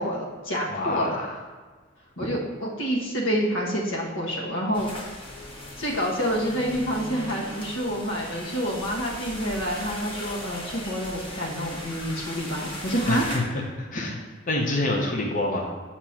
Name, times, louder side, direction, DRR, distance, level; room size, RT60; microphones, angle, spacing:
voice 1, 0.0-1.2 2.2-5.2 5.8-13.3 13.9-14.0, equal, 85° left, -2 dB, 1.2 m, -28 dB
voice 2, 0.7-1.4 13.1-14.2 14.5-15.7, left 2 dB, 45° left, 0 dB, 0.7 m, -27 dB
sound 1, 4.7-13.4, left 1 dB, 25° left, 1.2 m, -38 dB
6.4 x 2.9 x 5.7 m, 1.4 s
head